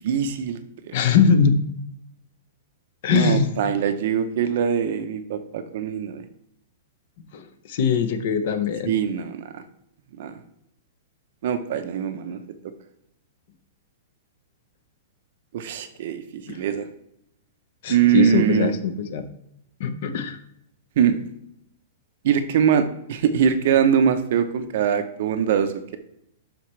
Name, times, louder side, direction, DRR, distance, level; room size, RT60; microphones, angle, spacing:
voice 1, 0.0-0.9 3.1-6.2 8.9-9.6 10.2-10.4 11.4-12.4 15.5-16.9 17.9-18.7 21.0-21.2 22.2-26.0, right 8 dB, 45° right, 9 dB, 0.7 m, -22 dB
voice 2, 0.9-1.6 3.0-3.5 7.3-8.9 16.5-16.6 17.8-19.2 19.8-20.4, left 6 dB, 40° left, 10 dB, 0.7 m, -21 dB
11.5 x 4.4 x 3.2 m, 0.77 s
supercardioid pair, 180°, 0 cm